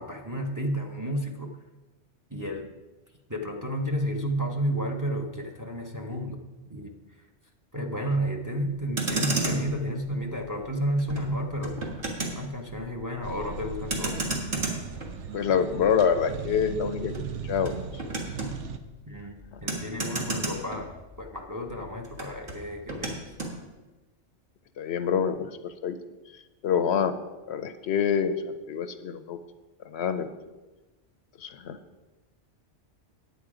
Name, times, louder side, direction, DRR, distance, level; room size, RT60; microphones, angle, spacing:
voice 1, 0.0-1.5 2.3-2.7 3.3-6.4 6.7-6.9 7.7-11.8 12.3-14.2 19.1-19.3 19.6-20.9 21.2-23.2, equal, 20° right, 2 dB, 0.7 m, -31 dB
Motor vehicle (road), 8.8-21.4 21.7-23.6, right 2 dB, 45° right, 1.9 m, -34 dB
sound 1, 13.2-18.8, right 6 dB, 85° right, 1.0 m, -38 dB
voice 2, 15.3-17.1 17.4-17.8 19.5-19.6 24.8-26.0 26.6-27.1 27.5-28.3 28.7-29.4 29.8-30.3 31.4-31.8, left 7 dB, 70° left, 10 dB, 0.8 m, -26 dB
9.3 x 8.4 x 4.9 m, 1.2 s
omnidirectional pair, 1.2 m